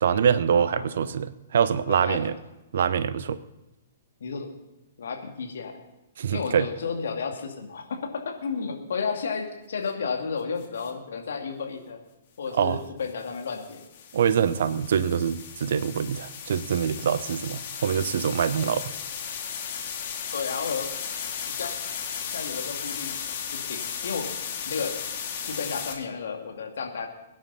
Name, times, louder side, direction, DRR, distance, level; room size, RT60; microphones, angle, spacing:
voice 1, 0.0-2.3 2.7-3.4 6.2-6.7 12.5-12.8 14.1-18.9, right 7 dB, 55° right, 15 dB, 0.7 m, -24 dB
voice 2, 0.5-1.2 1.9-2.3 4.2-4.5 5.0-5.8 6.3-12.0 12.4-13.8 20.3-21.0 21.5-21.8 22.3-23.2 23.5-24.3 24.6-24.9 25.5-27.1, left 5 dB, 60° left, 3 dB, 2.3 m, -32 dB
sound 1, 10.6-10.9 13.0-25.9, left 7 dB, 40° left, 2.3 m, -35 dB
22.5 x 10.0 x 4.1 m, 0.96 s
figure-of-eight pair, 115°, 0 cm